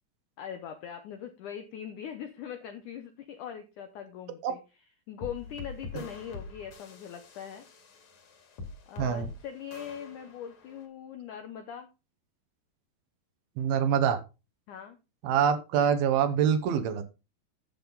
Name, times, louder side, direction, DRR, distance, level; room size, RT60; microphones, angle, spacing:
voice 1, 0.4-4.6 5.1-7.7 8.9-11.9 14.7-15.0, left 9 dB, 80° left, 7 dB, 1.8 m, -41 dB
sound 1, 5.2-10.8, left 3 dB, 50° left, 3.2 m, -45 dB
voice 2, 9.0-9.3 13.6-14.2 15.2-17.0, right 8 dB, 75° right, 9 dB, 2.6 m, -25 dB
10.5 x 7.6 x 3.9 m, 0.28 s
omnidirectional pair, 4.8 m